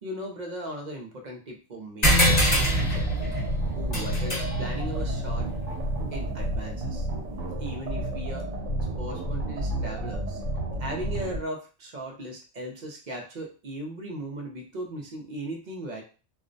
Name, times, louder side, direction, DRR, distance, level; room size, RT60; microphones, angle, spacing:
voice 1, 0.0-3.3 3.7-5.5 6.1-7.1 7.6-8.5 9.0-10.4 10.8-16.0, right 1 dB, 50° right, 1 dB, 0.6 m, -37 dB
sound 1, 2.0-6.9, equal, 35° left, 1.0 m, -26 dB
sound 2, 2.3-11.4, right 1 dB, 85° right, 0.9 m, -31 dB
2.4 x 2.0 x 2.5 m, 0.34 s
omnidirectional pair, 1.2 m